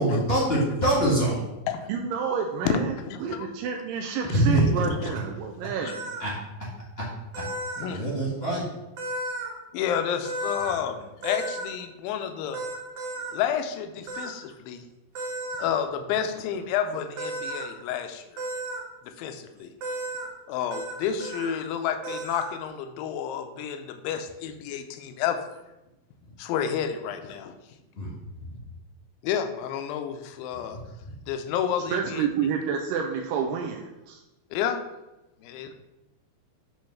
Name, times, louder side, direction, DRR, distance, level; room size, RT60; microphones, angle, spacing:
voice 1, 0.0-1.4 4.3-4.6 6.2-6.3 7.8-8.6 28.0-28.1, right 1 dB, 30° left, -6 dB, 1.1 m, -23 dB
voice 2, 1.9-2.9 3.2-6.1 31.9-34.2, right 6 dB, 80° right, 1 dB, 2.2 m, -29 dB
voice 3, 3.1-3.5 5.1-5.2 5.8-5.9 7.8-8.1 9.7-12.7 13.3-14.9 15.6-18.4 19.0-19.7 20.5-25.6 26.4-27.6 29.2-30.8 31.3-32.3 34.5-34.8 35.4-35.7, left 8 dB, 85° left, 7 dB, 2.4 m, -30 dB
sound 1, 5.9-6.2 7.3-7.9 9.0-9.5 10.2-10.8 11.2-11.7 12.5-13.3 14.1-14.3 15.1-15.6 17.2-17.7 18.4-18.8 19.8-20.3 20.7-20.9 21.2-21.5 22.0-22.5, right 2 dB, 55° right, 1.6 m, -33 dB
8.9 x 3.1 x 5.7 m, 0.98 s
omnidirectional pair, 4.1 m